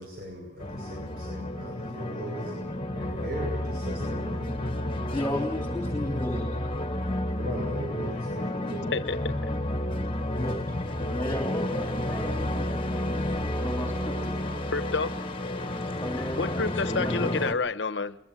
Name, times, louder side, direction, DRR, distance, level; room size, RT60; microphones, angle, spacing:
voice 1, 0.0-2.6 2.9-4.5 7.4-9.0, right 1 dB, 60° right, 0 dB, 6.0 m, -39 dB
sound 1, 0.6-17.5, left 1 dB, 30° left, 1.6 m, -31 dB
voice 2, 5.1-6.6 10.3-10.7 11.1-14.7 16.0-17.5, left 1 dB, 15° left, 2 dB, 3.0 m, -35 dB
voice 3, 8.9-9.3 14.7-15.1 16.4-18.2, left 4 dB, 85° left, 12 dB, 1.0 m, -29 dB
23.0 x 21.5 x 6.2 m, 0.81 s
head